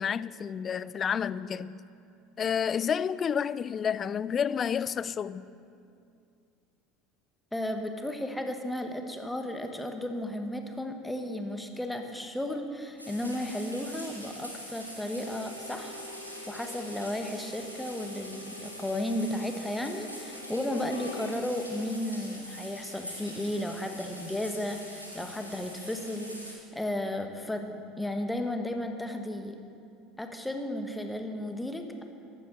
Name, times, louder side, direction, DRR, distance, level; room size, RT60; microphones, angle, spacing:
voice 1, 0.0-1.8 2.4-5.5, left 7 dB, 30° left, 0.3 m, -30 dB
voice 2, 7.5-16.0 16.5-29.6 30.2-32.0, left 1 dB, 5° left, 1.3 m, -34 dB
sound 1, 13.0-26.6, equal, 90° right, 1.7 m, -44 dB
Harmonica, 15.1-21.4, left 1 dB, 90° left, 1.3 m, -47 dB
14.0 x 11.0 x 4.5 m
figure-of-eight pair, 70°, 0 cm